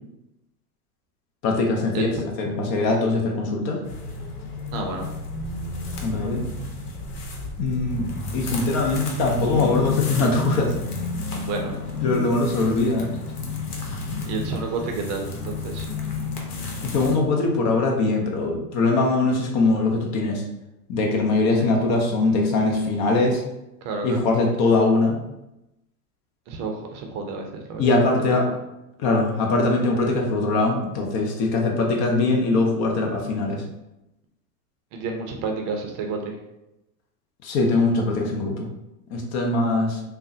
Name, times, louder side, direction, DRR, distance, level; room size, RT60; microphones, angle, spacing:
voice 1, 1.4-3.8 6.0-6.5 7.6-10.7 12.0-13.2 16.8-20.4 20.9-23.4 24.0-25.2 27.8-28.5 29.0-33.6 37.4-38.7 39.1-40.0, left 3 dB, 40° left, 1 dB, 0.6 m, -22 dB
sound 1, 3.8-17.1, left 4 dB, 75° left, 0.8 m, -31 dB
voice 2, 4.7-5.1 11.3-12.0 14.2-15.9 21.6-21.7 23.8-24.3 26.5-27.9 34.9-36.2, right 4 dB, 45° right, 3 dB, 0.5 m, -30 dB
3.3 x 2.1 x 2.6 m, 0.91 s
hypercardioid pair, 110°, 46 cm